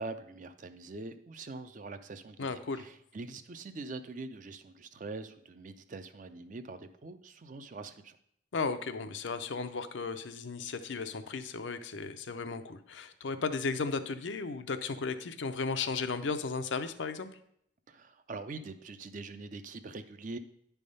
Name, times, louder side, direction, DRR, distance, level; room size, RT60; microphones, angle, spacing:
voice 1, 0.0-8.2 17.9-20.4, right 3 dB, 45° right, 10 dB, 0.5 m, -43 dB
voice 2, 2.4-2.8 8.5-17.3, left 4 dB, 80° left, 9 dB, 0.6 m, -35 dB
10.0 x 3.5 x 5.4 m, 0.70 s
head